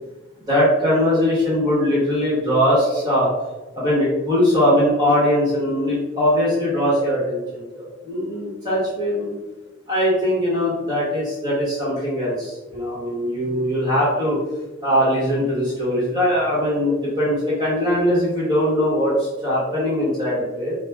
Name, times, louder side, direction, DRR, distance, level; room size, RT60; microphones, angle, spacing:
voice 1, 0.5-3.3 3.7-9.3 9.9-14.4 14.8-20.7, equal, 20° right, -7 dB, 1.4 m, -21 dB
4.9 x 2.4 x 3.5 m, 1.1 s
head